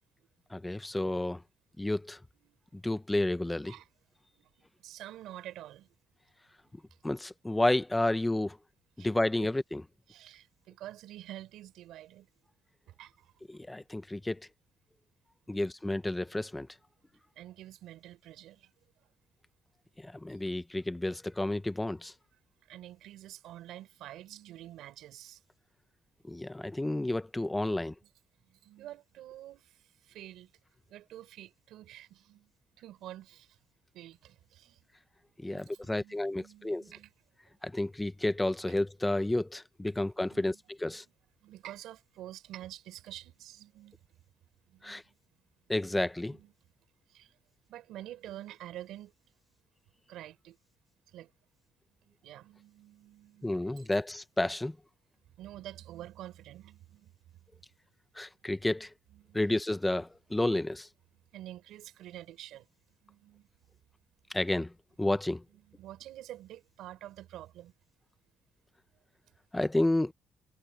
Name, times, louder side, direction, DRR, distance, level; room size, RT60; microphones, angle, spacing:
voice 1, 0.5-1.4 1.8-2.2 2.7-3.7 7.0-8.6 9.0-9.8 13.5-14.5 15.5-16.7 20.0-22.1 26.3-27.9 35.4-36.8 37.6-41.0 44.8-45.0 45.7-46.4 53.4-54.8 58.2-58.9 59.3-60.9 64.3-64.7 65.0-65.4 69.5-70.1, left 1 dB, 10° left, 0.8 m, -31 dB
voice 2, 4.3-5.9 9.0-9.1 9.4-9.5 10.1-12.3 12.9-13.3 15.5-15.6 17.3-18.7 19.0-19.1 20.3-20.4 21.6-21.7 22.6-25.4 28.4-30.5 30.9-33.6 33.9-34.9 35.2-37.1 39.9-40.0 40.3-40.6 40.9-41.0 41.4-44.0 44.7-45.2 46.3-46.5 47.1-47.4 47.7-49.1 50.1-50.6 51.1-51.3 51.9-53.8 55.2-57.1 57.4-57.6 58.6-58.7 59.1-59.4 61.3-62.7 63.0-63.5 65.5-67.7, right 13 dB, 90° right, 4.1 m, -48 dB
cardioid pair, 110°, 0 cm